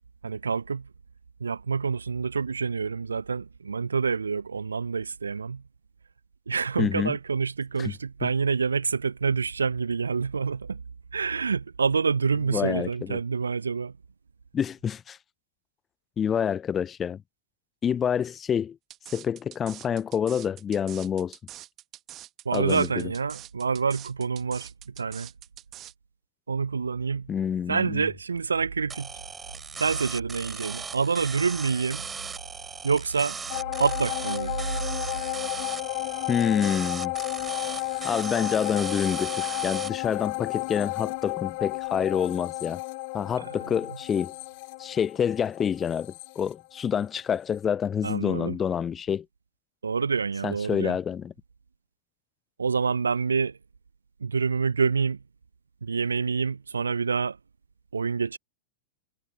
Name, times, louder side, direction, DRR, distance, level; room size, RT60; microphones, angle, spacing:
voice 1, 0.2-0.9 1.4-5.6 6.5-10.8 11.1-13.9 22.4-24.7 25.0-25.3 26.5-27.3 27.7-29.1 29.8-32.0 32.8-33.4 33.8-34.6 48.0-48.6 49.8-51.0 52.6-53.6 54.2-55.2 55.8-57.4 57.9-58.4, right 5 dB, 75° right, 0.8 m, -27 dB
voice 2, 6.8-7.2 7.8-7.9 8.2-8.3 12.5-13.2 14.5-15.2 16.2-17.2 17.8-18.8 19.1-21.4 22.5-23.1 27.3-28.1 36.3-37.1 38.0-42.8 43.1-44.3 44.8-49.2 50.4-51.3, left 8 dB, 20° left, 0.4 m, -27 dB
sound 1, 18.9-25.9, right 13 dB, 30° right, 1.2 m, -45 dB
sound 2, 28.9-39.9, right 5 dB, 15° right, 3.3 m, -38 dB
sound 3, 33.5-47.2 47.6-47.7, left 27 dB, 45° left, 2.4 m, -33 dB
figure-of-eight pair, 95°, 0 cm